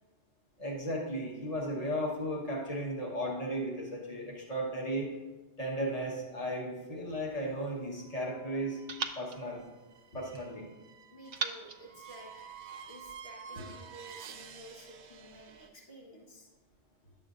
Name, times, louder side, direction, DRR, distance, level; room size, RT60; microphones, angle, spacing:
voice 1, 0.6-5.1 5.6-8.8 9.1-9.6 10.1-10.7 13.5-13.6, equal, 35° left, -2 dB, 1.4 m, -35 dB
sound 1, 7.1-8.3 8.9-10.5 11.3-12.9, right 4 dB, 55° right, 0.4 m, -42 dB
sound 2, 8.0-15.7, right 7 dB, 80° right, 0.9 m, -51 dB
voice 2, 11.1-16.5, right 1 dB, 60° left, -2 dB, 1.6 m, -52 dB
11.0 x 7.5 x 2.5 m, 1.2 s
omnidirectional pair, 1.1 m